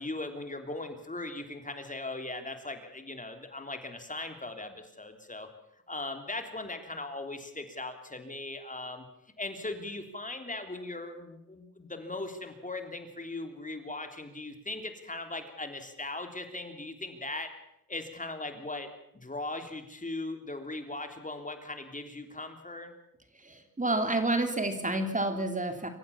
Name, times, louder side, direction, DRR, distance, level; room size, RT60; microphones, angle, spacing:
voice 1, 0.0-5.5 5.9-9.0 9.4-17.5 17.9-22.9, left 2 dB, 20° left, 6 dB, 3.4 m, -39 dB
voice 2, 23.4-25.9, right 2 dB, 20° right, 7 dB, 3.0 m, -29 dB
26.5 x 15.0 x 7.2 m, 0.80 s
cardioid pair, 60°, 35 cm